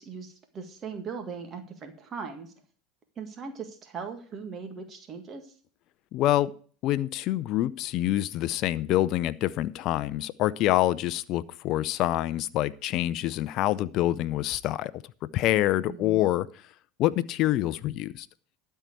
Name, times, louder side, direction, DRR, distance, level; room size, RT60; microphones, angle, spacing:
voice 1, 0.0-2.5 3.2-5.5 15.9-16.2, right 5 dB, 35° right, 6 dB, 1.8 m, -39 dB
voice 2, 6.1-6.5 6.8-14.9 15.3-16.5 17.0-18.3, left 14 dB, 50° left, 16 dB, 0.5 m, -26 dB
12.0 x 4.6 x 8.4 m, 0.44 s
hypercardioid pair, 80°, 0 cm